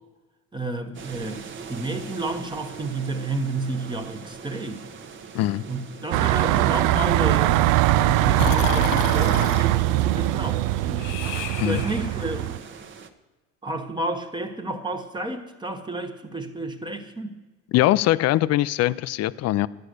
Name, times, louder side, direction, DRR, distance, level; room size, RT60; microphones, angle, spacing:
voice 1, 0.5-4.9 5.7-11.0 11.6-12.6 13.6-17.3, right 2 dB, 15° right, 6 dB, 1.1 m, -31 dB
sound 1, 0.9-13.1, right 5 dB, 35° right, 1.0 m, -42 dB
sound 2, 6.1-12.6, right 15 dB, 70° right, 0.5 m, -21 dB
Breathing, 8.4-9.7 11.0-12.2, left 11 dB, 80° left, 0.8 m, -31 dB
voice 2, 17.7-19.7, left 15 dB, 50° left, 18 dB, 0.5 m, -21 dB
12.0 x 10.0 x 6.5 m, 1.2 s
cardioid pair, 115°, 33 cm